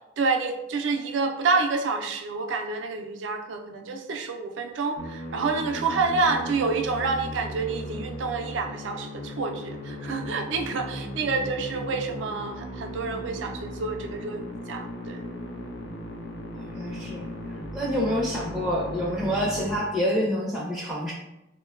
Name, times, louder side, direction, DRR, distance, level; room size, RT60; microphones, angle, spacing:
voice 1, 0.2-15.2, right 4 dB, 85° right, 4 dB, 0.4 m, -28 dB
Musical instrument, 5.0-19.8, equal, 75° left, 0.5 m, -37 dB
voice 2, 16.5-17.3 17.7-21.1, equal, 5° right, -4 dB, 0.4 m, -27 dB
3.7 x 2.1 x 2.3 m, 0.90 s
head